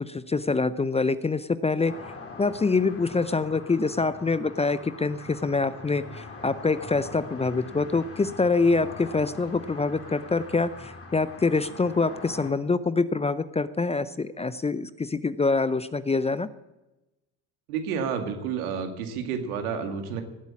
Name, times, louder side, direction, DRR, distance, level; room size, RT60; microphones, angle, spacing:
voice 1, 0.0-1.9 2.4-16.5, left 3 dB, 15° left, 15 dB, 0.6 m, -25 dB
sound 1, 1.9-12.5, left 3 dB, 30° left, 3.6 m, -43 dB
voice 2, 17.7-20.2, right 6 dB, 80° right, 5 dB, 2.2 m, -30 dB
18.0 x 8.1 x 8.5 m, 1.0 s
hypercardioid pair, 65°, 43 cm